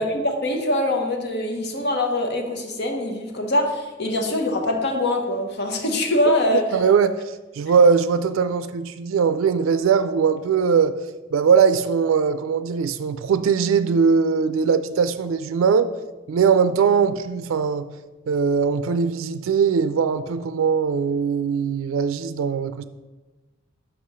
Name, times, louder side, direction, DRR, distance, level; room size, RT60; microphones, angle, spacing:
voice 1, 0.0-6.7, left 1 dB, 55° left, 1.1 m, -23 dB
voice 2, 6.7-11.0 11.3-15.9 16.3-17.9 18.3-22.8, right 6 dB, 85° right, 0.3 m, -20 dB
6.1 x 4.8 x 5.5 m
head